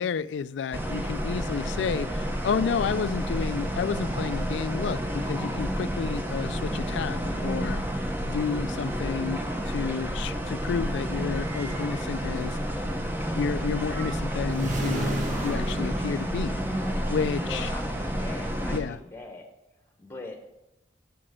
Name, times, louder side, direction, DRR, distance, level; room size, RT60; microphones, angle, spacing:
voice 1, 0.0-12.6 13.3-16.6 17.1-17.7 18.7-19.0, left 6 dB, 80° left, 16 dB, 0.3 m, -31 dB
sound 1, 0.7-18.8, equal, 10° right, 0.9 m, -30 dB
sound 2, 11.1-12.2 13.7-14.3 15.3-16.2, right 4 dB, 80° right, 1.6 m, -49 dB
Whoosh whitenoise modulation, 14.5-17.1, right 1 dB, 45° right, 1.5 m, -35 dB
voice 2, 17.4-19.5 20.0-20.4, left 2 dB, 15° left, 3 dB, 1.2 m, -41 dB
7.5 x 6.0 x 7.6 m, 0.93 s
head